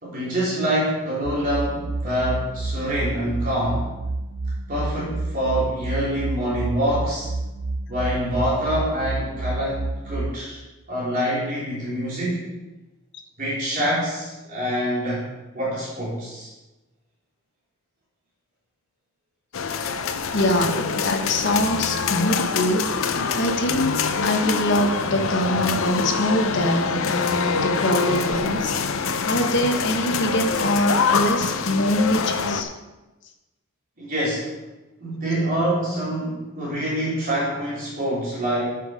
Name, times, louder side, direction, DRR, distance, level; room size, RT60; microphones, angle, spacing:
voice 1, 0.0-3.9 4.7-7.3 7.9-10.6 10.9-12.5 13.4-15.3 15.5-16.5 34.0-34.5 35.0-38.7, equal, 40° right, -8 dB, 3.5 m, -25 dB
sound 1, 1.2-10.3, right 2 dB, 55° right, 0.5 m, -29 dB
sound 2, 19.5-32.6, left 5 dB, 70° left, 0.7 m, -25 dB
voice 2, 20.3-32.7, left 1 dB, 55° left, 4 dB, 1.3 m, -24 dB
8.3 x 7.5 x 5.2 m, 1.1 s
head